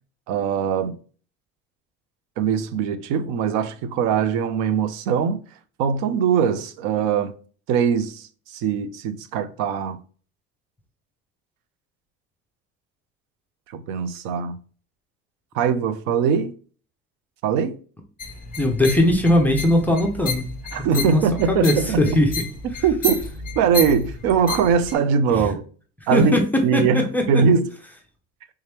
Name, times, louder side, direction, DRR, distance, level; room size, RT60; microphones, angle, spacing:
voice 1, 0.3-1.0 2.4-5.4 5.8-7.3 7.7-10.0 13.7-14.6 15.5-16.5 17.4-17.8 20.7-22.2 22.6-23.2 23.6-25.6 26.1-26.3 26.6-27.7, right 6 dB, 75° right, 0.5 m, -21 dB
sound 1, 18.2-24.9, left 3 dB, 30° left, 0.7 m, -31 dB
voice 2, 18.6-20.4 21.0-21.2 21.5-22.3 25.3-25.5 26.1-26.4 26.7-27.4, left 1 dB, 5° left, 0.4 m, -19 dB
3.4 x 2.9 x 3.3 m
cardioid pair, 160°, 30 cm